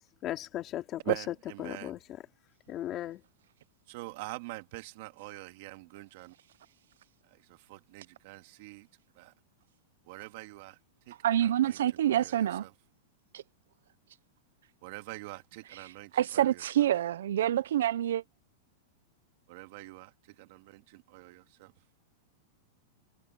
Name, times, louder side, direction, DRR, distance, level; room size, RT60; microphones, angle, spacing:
voice 1, 0.2-2.3 2.7-3.2, left 13 dB, 30° left, 2.6 m, -37 dB
voice 2, 1.1-1.9 3.9-6.3 7.7-8.9 9.2-9.3 10.1-10.7 11.1-11.2 11.6-11.8 12.2-12.3 14.8-16.1 16.4-16.5 19.5-20.1 20.4-21.7, right 21 dB, 55° right, 2.6 m, -42 dB
voice 3, 11.2-12.7 13.3-13.4 15.6-18.2, right 11 dB, 80° right, 0.5 m, -27 dB
supercardioid pair, 140°, 0 cm